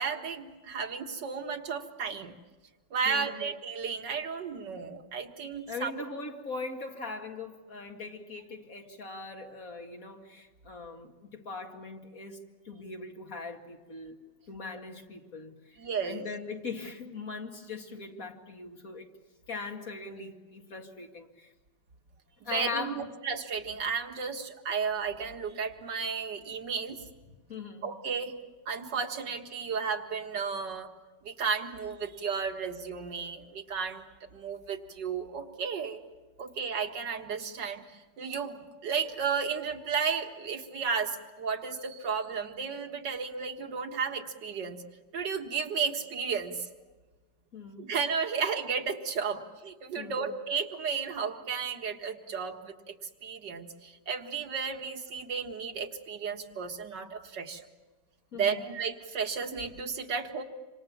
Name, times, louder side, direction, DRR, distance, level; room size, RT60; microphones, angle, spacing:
voice 1, 0.0-2.3 2.9-5.9 15.8-16.3 22.5-27.0 27.8-28.3 28.7-30.9 31.2-34.0 34.3-36.0 36.4-37.8 38.2-44.8 45.1-46.7 47.8-53.0 53.2-57.6 58.3-60.4, right 6 dB, 85° right, 5 dB, 2.3 m, -33 dB
voice 2, 3.0-3.4 5.7-14.2 14.5-19.1 19.5-21.5 22.4-23.1 27.5-27.9 47.5-47.9 50.0-50.3 58.3-58.7, left 4 dB, 50° left, 3 dB, 2.5 m, -40 dB
27.0 x 26.5 x 7.2 m, 1.2 s
omnidirectional pair, 1.8 m